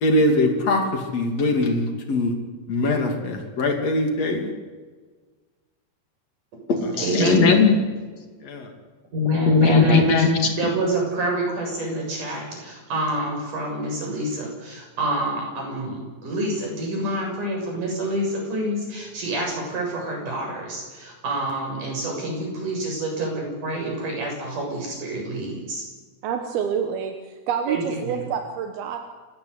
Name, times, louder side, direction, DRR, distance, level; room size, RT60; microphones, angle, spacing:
voice 1, 0.0-2.3 2.7-4.5 6.7-7.8 8.4-8.7 9.5-10.3, left 3 dB, 40° left, 4 dB, 2.8 m, -20 dB
voice 2, 7.0-7.5 9.1-10.1 10.6-25.8 27.7-28.2, right 1 dB, 40° right, 1 dB, 8.4 m, -27 dB
voice 3, 26.2-27.1 27.5-29.0, right 7 dB, 65° right, 5 dB, 2.7 m, -27 dB
29.5 x 16.0 x 8.2 m, 1.4 s
omnidirectional pair, 5.9 m